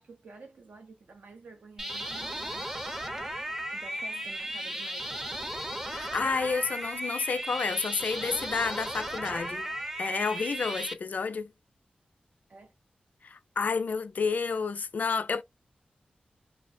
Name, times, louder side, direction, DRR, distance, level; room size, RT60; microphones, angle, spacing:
voice 1, 0.0-3.1 3.7-6.3 12.5-12.7, right 3 dB, 70° right, 0.5 m, -51 dB
sound 1, 1.8-10.9, right 1 dB, 15° right, 0.5 m, -35 dB
voice 2, 5.9-9.7 10.0-11.5 13.2-15.4, left 5 dB, 65° left, 0.4 m, -30 dB
2.3 x 2.1 x 2.5 m
wide cardioid pair, 100°, 3 cm